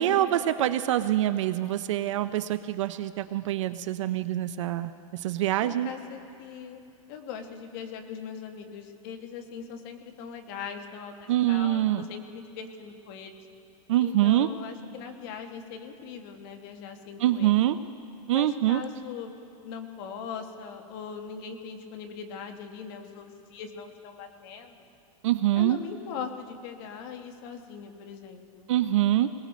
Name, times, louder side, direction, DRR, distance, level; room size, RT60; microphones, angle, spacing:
voice 1, 0.0-5.9 11.3-12.0 13.9-14.5 17.2-17.8 18.3-18.8 25.2-25.8 28.7-29.3, right 13 dB, 60° right, 12 dB, 0.5 m, -25 dB
voice 2, 5.6-6.8 7.1-13.5 14.0-17.5 18.3-19.3 19.6-24.9 25.5-28.7, left 6 dB, 40° left, 5 dB, 1.2 m, -40 dB
21.0 x 19.5 x 3.1 m, 2.6 s
supercardioid pair, 165°, 18 cm